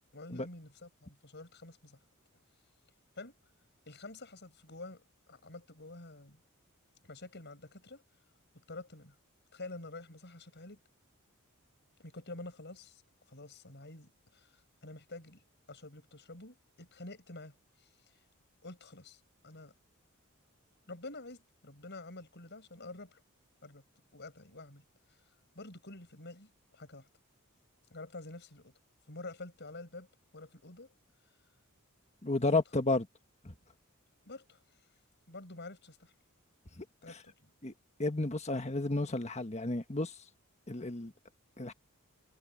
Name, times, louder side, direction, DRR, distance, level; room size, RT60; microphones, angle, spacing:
voice 1, 0.1-2.0 3.2-3.3 3.9-5.0 5.3-6.4 7.0-8.0 8.7-9.1 9.5-10.8 12.0-13.0 13.3-14.5 14.8-15.4 15.7-17.5 18.6-19.7 20.9-23.2 23.6-23.8 24.1-24.8 25.6-27.1 27.9-28.7 29.1-30.1 30.3-30.9 32.5-32.6 34.3-34.6 35.3-36.1 37.0-37.3, left 2 dB, 50° left, 6.9 m, -48 dB
voice 2, 32.2-33.1 33.4-33.5 37.6-37.7 38.0-40.1 40.7-41.1 41.6-41.7, left 2 dB, 30° left, 1.6 m, -31 dB
head